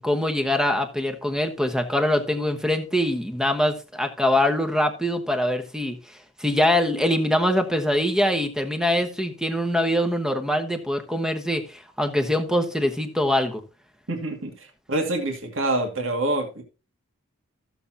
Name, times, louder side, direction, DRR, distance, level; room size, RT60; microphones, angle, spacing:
voice 1, 0.0-6.0 6.4-13.6, left 1 dB, 5° right, 7 dB, 1.1 m, -23 dB
voice 2, 14.1-16.6, right 2 dB, 60° right, 3 dB, 2.2 m, -26 dB
14.5 x 7.0 x 2.8 m, 0.32 s
head